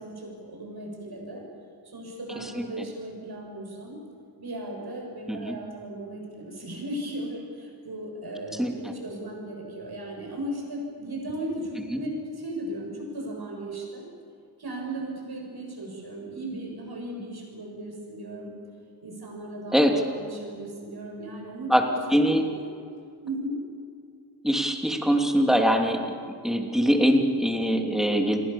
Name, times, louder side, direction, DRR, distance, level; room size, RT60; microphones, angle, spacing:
voice 1, 0.0-1.5 1.8-4.0 4.4-14.1 14.6-18.6 19.0-19.8 20.1-22.2 22.5-22.7 23.2-23.6, right 1 dB, 60° right, 1 dB, 7.5 m, -36 dB
voice 2, 22.1-22.4 24.4-26.2 26.4-28.4, equal, ahead, 2 dB, 2.9 m, -22 dB
29.0 x 22.0 x 7.1 m, 2.3 s
wide cardioid pair, 110°, 42 cm